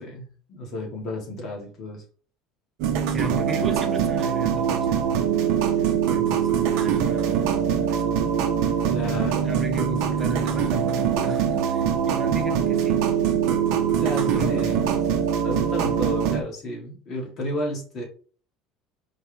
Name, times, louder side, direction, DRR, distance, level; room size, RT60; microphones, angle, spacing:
voice 1, 0.0-2.0 8.9-9.6 13.9-15.0 15.4-18.1, left 1 dB, 40° left, 1.4 m, -32 dB
sound 1, 2.8-16.4, right 8 dB, 75° right, 0.6 m, -23 dB
voice 2, 3.1-5.2 6.1-8.1 9.0-13.1 14.0-14.7, right 1 dB, 20° right, 0.7 m, -35 dB
4.4 x 2.3 x 3.1 m
cardioid pair, 155°, 0 cm